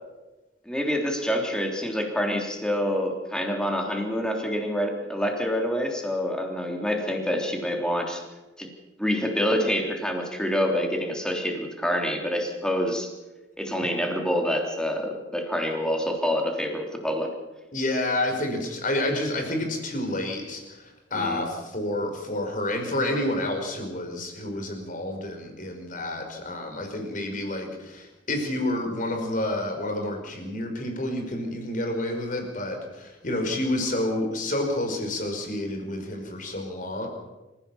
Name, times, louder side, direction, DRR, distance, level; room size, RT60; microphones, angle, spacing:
voice 1, 0.6-8.2 8.6-8.7 9.0-13.1 13.6-17.3 21.1-21.4, equal, 5° left, 2 dB, 3.4 m, -27 dB
voice 2, 17.7-37.1, left 1 dB, 45° left, 3 dB, 5.1 m, -29 dB
26.5 x 15.5 x 7.2 m, 1.1 s
head